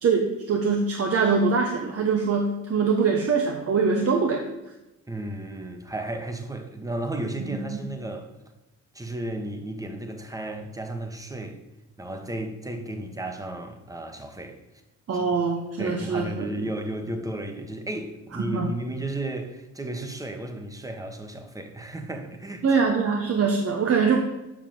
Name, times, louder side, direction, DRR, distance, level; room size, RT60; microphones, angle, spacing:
voice 1, 0.0-4.5 7.7-7.8 15.1-16.6 18.3-18.7 22.6-24.2, right 5 dB, 50° right, 1.3 m, -23 dB
voice 2, 5.1-8.3 8.9-11.6 12.0-14.6 15.8-22.6, right 1 dB, 10° right, 1.5 m, -33 dB
7.6 x 5.9 x 7.7 m
cardioid pair, 90°, 30 cm